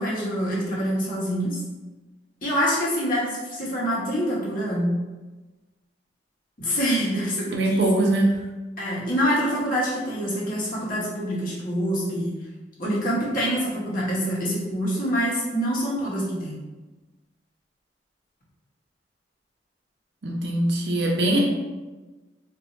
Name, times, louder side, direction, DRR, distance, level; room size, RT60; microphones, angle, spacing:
voice 1, 0.0-1.6 2.4-5.0 6.6-7.8 8.8-12.4 12.8-16.6, equal, 50° left, -6 dB, 1.1 m, -25 dB
voice 2, 7.5-8.4 20.2-21.5, right 1 dB, 70° right, 0 dB, 0.7 m, -22 dB
4.1 x 2.6 x 2.5 m, 1.2 s
head